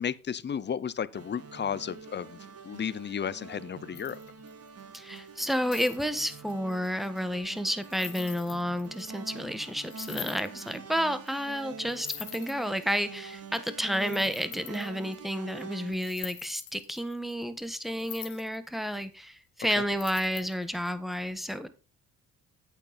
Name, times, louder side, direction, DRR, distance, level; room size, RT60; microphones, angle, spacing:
voice 1, 0.0-4.2, left 8 dB, 35° left, 0.8 m, -33 dB
sound 1, 1.1-15.9, right 5 dB, 55° right, 1.9 m, -45 dB
sound 2, 3.9-4.7 5.2-9.0 9.3-9.4 9.6-9.7 9.9-10.7 11.3-11.4 11.6-11.7 11.9-12.9 13.5-13.6 14.0-15.1 15.9-18.6 18.9-19.0 19.9-20.7, left 13 dB, 85° left, 1.5 m, -44 dB
voice 2, 4.9-21.7, equal, ahead, 1.3 m, -31 dB
8.9 x 8.5 x 4.1 m
cardioid pair, 90°, 30 cm